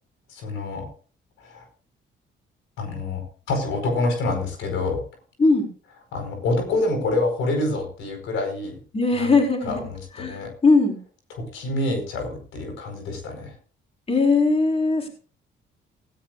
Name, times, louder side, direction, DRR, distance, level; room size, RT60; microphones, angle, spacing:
voice 1, 0.3-0.9 1.4-1.6 2.8-3.2 3.5-5.0 6.1-8.8 9.1-10.5 11.3-13.5, left 2 dB, 85° left, 4 dB, 4.8 m, -27 dB
voice 2, 8.9-9.8 10.2-10.9 14.1-15.1, left 3 dB, 30° left, 1 dB, 4.4 m, -19 dB
17.0 x 16.0 x 2.5 m, 0.40 s
cardioid pair, 90°, 20 cm